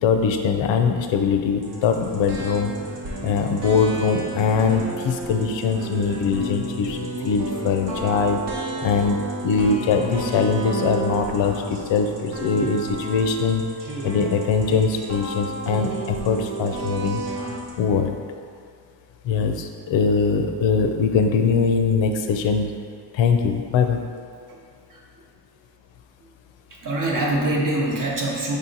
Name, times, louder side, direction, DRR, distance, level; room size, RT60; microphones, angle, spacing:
voice 1, 0.0-2.7 3.2-7.0 7.2-8.4 8.8-13.7 14.0-17.2 17.8-18.2 19.2-22.7 23.1-24.0, left 5 dB, 85° left, 5 dB, 0.5 m, -22 dB
sound 1, 1.6-17.7, right 2 dB, 65° right, 0.9 m, -32 dB
voice 2, 24.9-25.2 26.2-26.3 26.7-28.6, right 1 dB, 45° right, -2 dB, 0.8 m, -25 dB
5.0 x 2.8 x 3.8 m, 2.2 s
wide cardioid pair, 165°, 44 cm